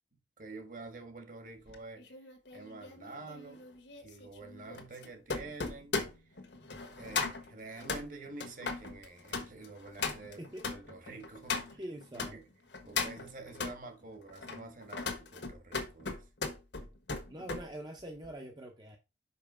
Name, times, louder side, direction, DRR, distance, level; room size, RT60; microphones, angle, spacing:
voice 1, 0.4-2.1 2.5-3.6 4.0-6.3 6.8-10.4 10.7-11.8 12.1-12.4 12.8-16.2, right 3 dB, 45° right, 1.5 m, -48 dB
sound 1, 1.7-12.3 12.7-13.8 14.3-17.7 18.0-18.3, left 4 dB, 75° left, 1.4 m, -38 dB
voice 2, 11.8-12.4 17.3-19.0, right 1 dB, 25° right, 0.7 m, -44 dB
5.7 x 5.5 x 4.9 m
head